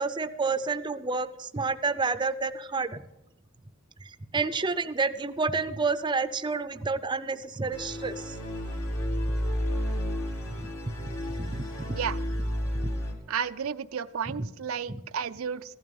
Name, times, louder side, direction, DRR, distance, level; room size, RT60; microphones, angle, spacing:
voice 1, 0.0-3.0 4.3-8.4 10.6-10.7 11.0-11.1 11.4-11.9 12.8-12.9 14.3-14.5 14.9-15.0, right 4 dB, 20° right, 11 dB, 0.6 m, -29 dB
sound 1, 7.7-13.1, equal, 80° left, 3.0 m, -31 dB
voice 2, 13.3-15.7, right 7 dB, 75° right, 11 dB, 0.5 m, -32 dB
15.5 x 12.5 x 5.4 m, 0.94 s
head